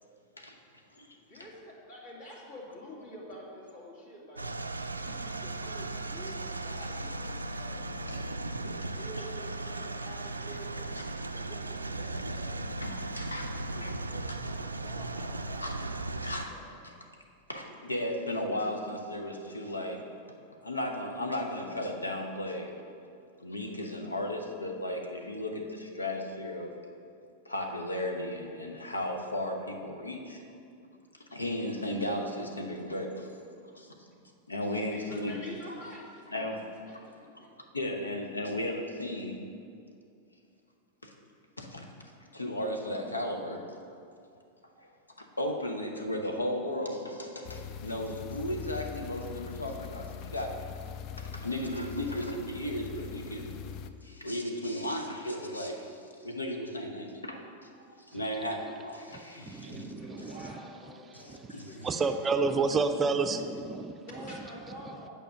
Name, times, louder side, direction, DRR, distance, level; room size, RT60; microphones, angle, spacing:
voice 1, 1.3-4.5 5.0-8.2 8.5-11.0 11.3-12.7 13.7-16.7 34.9-36.4 36.9-37.6 59.9-62.6 64.0-65.1, equal, 55° left, -4 dB, 2.5 m, -48 dB
sound 1, 4.4-16.4, right 2 dB, 80° right, 0.4 m, -37 dB
voice 2, 12.8-13.5 13.8-13.9 15.6-15.7 16.2-16.5 16.8-16.9 17.5-20.0 20.6-22.7 23.4-26.7 27.4-30.4 31.3-33.3 33.7-34.1 34.5-35.3 36.3-36.6 37.3-37.5 37.7-39.4 41.0-41.1 41.6-41.9 42.3-43.7 44.8-44.9 45.2-50.5 51.2-53.5 54.0-57.7 58.0-60.4 61.1-61.9, left 1 dB, 80° left, 3 dB, 1.0 m, -35 dB
sound 2, 47.4-53.9, left 7 dB, 40° left, 0.4 m, -42 dB
voice 3, 59.5-60.5 61.8-64.3, right 4 dB, 20° right, 8 dB, 0.5 m, -30 dB
9.2 x 5.1 x 6.3 m, 2.4 s
figure-of-eight pair, 90°, 0 cm